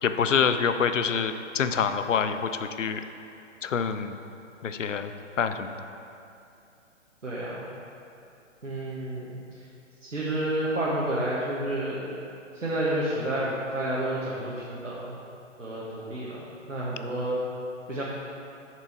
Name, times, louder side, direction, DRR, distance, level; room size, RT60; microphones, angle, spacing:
voice 1, 0.0-2.5 2.8-3.0 3.6-4.2 4.6-5.1 5.4-5.7, left 6 dB, 75° left, 9 dB, 0.6 m, -26 dB
voice 2, 7.2-7.6 8.6-9.6 10.0-12.0 12.5-15.2 15.6-17.4 17.9-18.0, right 1 dB, 80° right, -7 dB, 1.4 m, -30 dB
7.2 x 6.0 x 4.5 m, 2.7 s
figure-of-eight pair, 130°, 37 cm